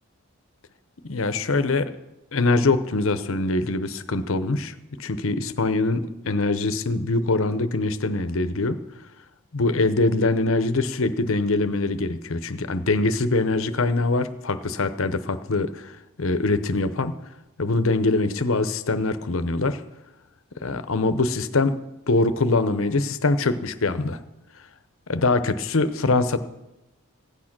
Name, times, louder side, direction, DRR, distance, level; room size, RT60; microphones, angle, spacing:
voice 1, 1.0-1.9 2.3-8.8 9.5-17.1 17.6-19.8 20.6-21.8 22.1-24.2 25.1-26.4, left 3 dB, 65° left, 11 dB, 0.8 m, -23 dB
15.5 x 8.8 x 6.0 m, 0.96 s
head